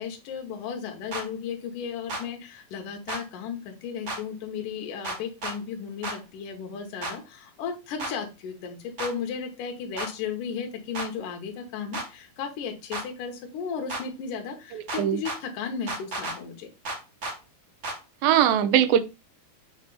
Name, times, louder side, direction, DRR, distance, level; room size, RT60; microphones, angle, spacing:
voice 1, 0.0-16.7, left 6 dB, 70° left, 2.4 m, -35 dB
sound 1, 1.1-1.2 2.1-2.2 3.1-3.2 4.1-4.2 5.0-5.6 6.0-6.2 7.0-7.1 8.0-8.1 9.0-9.1 10.0-10.1 10.9-11.1 11.9-12.1 12.9-13.1 13.9-14.0 14.9-15.4 15.9-16.4 16.8-17.4 17.8-18.0, right 2 dB, 50° right, 1.1 m, -32 dB
voice 2, 14.7-15.2 18.2-19.0, right 10 dB, 85° right, 2.4 m, -21 dB
6.8 x 2.8 x 5.4 m
omnidirectional pair, 4.1 m